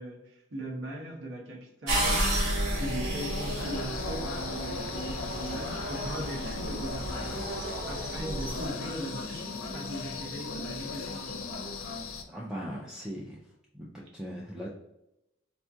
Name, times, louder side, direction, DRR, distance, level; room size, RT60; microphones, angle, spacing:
voice 1, 0.0-2.5 2.8-11.4, equal, 60° right, -2 dB, 0.9 m, -39 dB
sound 1, 1.9-8.7, right 1 dB, 90° right, 1.1 m, -32 dB
sound 2, 3.2-12.2, left 4 dB, 85° left, 0.5 m, -38 dB
voice 2, 12.3-13.4 13.7-14.7, equal, 5° right, -4 dB, 0.4 m, -39 dB
4.3 x 2.3 x 2.7 m, 0.87 s
head